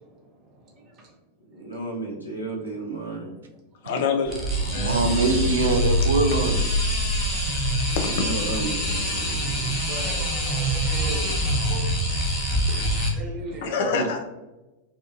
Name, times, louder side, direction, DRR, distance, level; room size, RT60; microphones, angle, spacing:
voice 1, 1.5-3.4 7.9-9.8 13.9-14.1, right 3 dB, 80° left, -3 dB, 0.7 m, -33 dB
voice 2, 3.8-5.3 8.0-8.3 13.6-14.2, left 5 dB, 55° left, 4 dB, 0.4 m, -27 dB
sound 1, 4.3-13.1, equal, 10° left, 0.6 m, -25 dB
voice 3, 4.6-6.6 10.4-11.2, right 2 dB, 70° right, 4 dB, 0.4 m, -24 dB
voice 4, 9.8-11.8 13.1-13.9, right 2 dB, 35° right, 0 dB, 0.7 m, -37 dB
2.8 x 2.3 x 2.3 m, 1.0 s
figure-of-eight pair, 90°, 0 cm